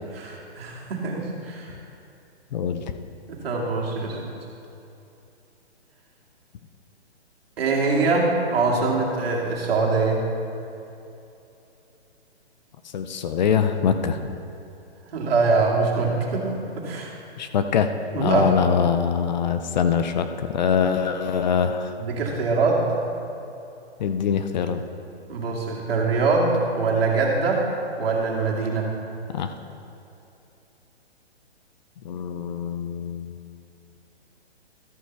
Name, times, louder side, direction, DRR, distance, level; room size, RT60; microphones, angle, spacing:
voice 1, 0.1-1.7 3.3-4.2 7.6-10.3 15.1-17.1 18.1-18.5 22.0-22.9 25.3-27.7 28.0-28.9, right 3 dB, 60° right, -2 dB, 2.3 m, -23 dB
voice 2, 2.5-2.8 12.9-14.3 17.4-21.9 24.0-24.8 29.3-29.5 32.0-33.3, left 7 dB, 40° left, 8 dB, 0.5 m, -24 dB
13.0 x 6.6 x 4.6 m, 2.8 s
hypercardioid pair, 140°, 33 cm